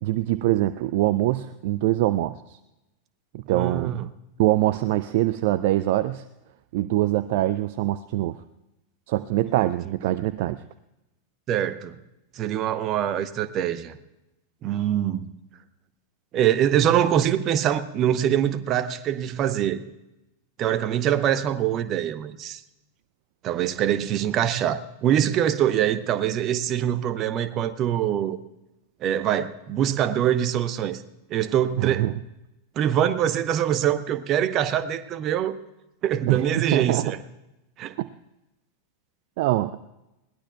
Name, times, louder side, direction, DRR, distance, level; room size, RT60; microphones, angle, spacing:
voice 1, 0.0-2.6 3.3-4.1 4.4-6.2 6.7-8.4 9.1-10.6 31.8-32.1 36.3-37.1 38.0-38.1 39.4-39.8, right 16 dB, 50° right, 14 dB, 0.4 m, -24 dB
voice 2, 3.5-4.1 9.5-9.7 11.5-11.9 12.4-14.0 14.6-15.3 16.3-19.8 20.6-22.6 23.4-28.4 29.0-31.0 31.3-32.1 32.8-35.6 36.0-37.2 37.8-38.0, right 10 dB, 35° right, 12 dB, 0.8 m, -24 dB
21.0 x 17.5 x 2.3 m, 0.94 s
figure-of-eight pair, 90°, 0 cm